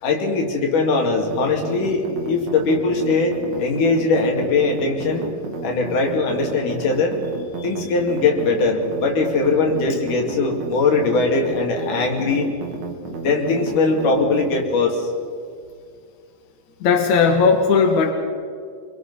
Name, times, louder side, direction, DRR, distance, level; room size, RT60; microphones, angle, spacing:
voice 1, 0.0-5.2 5.6-7.2 7.6-12.5 13.2-15.1, left 3 dB, 85° left, 1 dB, 4.1 m, -20 dB
sound 1, 1.2-14.6, right 4 dB, 65° right, 3.2 m, -32 dB
voice 2, 16.8-18.1, left 5 dB, 70° left, 3 dB, 2.9 m, -16 dB
26.0 x 23.0 x 5.5 m, 2.2 s
omnidirectional pair, 3.5 m